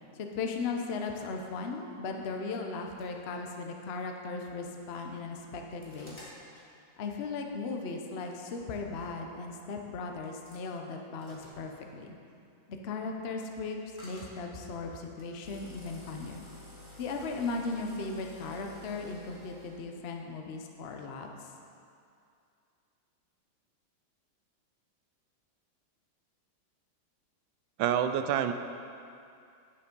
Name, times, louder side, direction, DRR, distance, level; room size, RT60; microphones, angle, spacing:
voice 1, 0.1-6.2 7.0-12.2 12.7-16.4 17.0-21.5, left 4 dB, 85° left, 3 dB, 0.5 m, -37 dB
sound 1, 2.9-3.1 3.7-3.8 4.7-5.0 5.4-6.7 8.3-8.4 8.9-9.1 10.2-10.6 11.2-11.7 14.0-14.4 15.2-19.8, left 1 dB, 15° left, 1.3 m, -51 dB
voice 2, 27.8-28.5, right 9 dB, 75° right, 9 dB, 1.2 m, -27 dB
9.5 x 6.9 x 5.3 m, 2.5 s
omnidirectional pair, 2.2 m